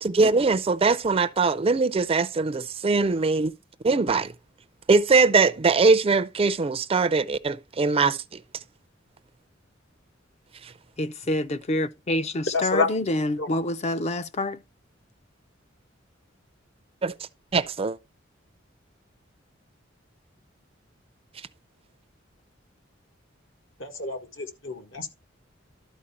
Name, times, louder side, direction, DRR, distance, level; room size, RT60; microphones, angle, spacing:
voice 1, 0.0-3.5 3.8-4.3 4.9-8.4 10.6-10.7 17.0-17.1 17.5-18.0, right 4 dB, 30° right, 0.4 m, -21 dB
voice 2, 11.0-14.6, left 1 dB, 35° left, 0.5 m, -27 dB
voice 3, 12.5-12.9 13.4-13.6 23.8-25.1, left 3 dB, 70° left, 1.7 m, -28 dB
12.5 x 4.4 x 4.2 m
head